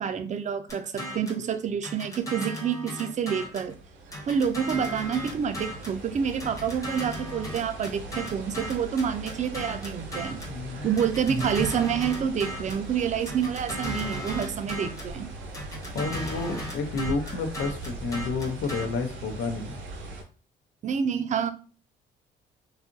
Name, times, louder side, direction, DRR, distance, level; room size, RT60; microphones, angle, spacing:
voice 1, 0.0-3.7 4.3-10.4 10.8-15.3 20.8-21.5, right 7 dB, 40° right, 9 dB, 0.4 m, -28 dB
sound 1, 0.7-1.4 1.8-3.7 4.1-6.0 6.4-10.6 11.0-12.9 13.3-15.1 15.5-18.9, equal, 15° left, 0.8 m, -36 dB
sound 2, 3.1-20.2, right 2 dB, 75° right, 0.7 m, -40 dB
voice 2, 10.5-10.9 15.9-19.8, left 4 dB, 70° left, 6 dB, 0.6 m, -30 dB
2.7 x 2.4 x 2.5 m, 0.38 s
cardioid pair, 90°, 20 cm